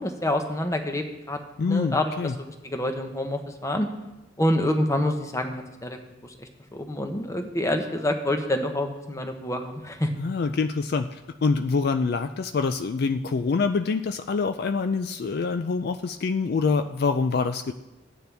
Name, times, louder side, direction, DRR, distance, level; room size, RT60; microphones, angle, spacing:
voice 1, 0.0-2.1 2.4-3.9 4.4-10.1, left 1 dB, 15° left, 5 dB, 0.9 m, -27 dB
voice 2, 1.6-2.4 10.2-17.7, left 4 dB, 55° left, 9 dB, 0.4 m, -25 dB
14.5 x 9.2 x 3.4 m, 1.0 s
head